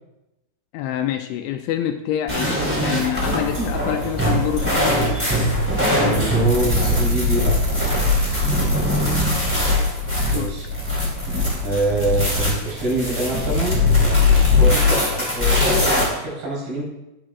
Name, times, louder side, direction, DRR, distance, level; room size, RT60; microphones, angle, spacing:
voice 1, 0.7-2.6 2.8-5.0 8.6-8.9 10.3-10.6, left 11 dB, 85° left, 6 dB, 2.8 m, -26 dB
sound 1, 2.3-16.0, left 2 dB, 5° right, 2.4 m, -20 dB
voice 2, 6.1-7.6 7.9-8.2 10.3-10.7 11.6-13.8 14.5-16.8, right 2 dB, 75° right, -5 dB, 6.7 m, -25 dB
18.5 x 8.4 x 2.5 m, 0.95 s
omnidirectional pair, 5.7 m